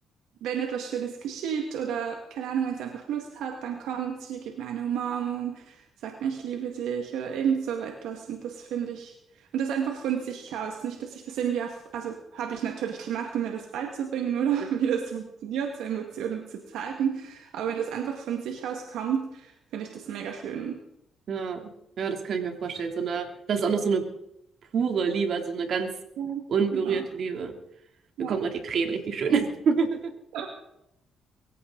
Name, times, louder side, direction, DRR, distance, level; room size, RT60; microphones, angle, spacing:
voice 1, 0.4-20.8 26.2-26.4 26.7-27.0 28.2-28.4 30.3-30.5, right 8 dB, 85° right, 3 dB, 1.9 m, -31 dB
voice 2, 21.3-21.7 22.0-24.0 24.7-25.9 26.5-27.5 28.3-30.1, right 5 dB, 60° right, 4 dB, 3.1 m, -27 dB
23.5 x 15.5 x 4.0 m, 0.80 s
cardioid pair, 90°, 0 cm